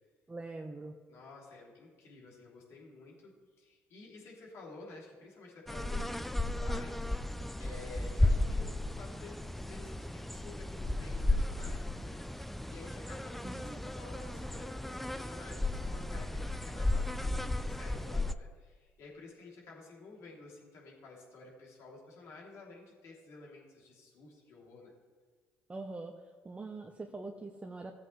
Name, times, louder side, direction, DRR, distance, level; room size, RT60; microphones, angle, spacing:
voice 1, 0.3-0.9 13.4-13.9 25.7-26.2 26.4-27.9, right 3 dB, 20° right, 3 dB, 0.9 m, -43 dB
voice 2, 1.1-7.0 7.6-12.2 12.7-24.9, left 3 dB, 65° left, -3 dB, 3.0 m, -52 dB
sound 1, 5.7-18.3, left 1 dB, 5° left, 0.4 m, -34 dB
15.5 x 7.9 x 3.2 m, 1.5 s
supercardioid pair, 65°, 5 cm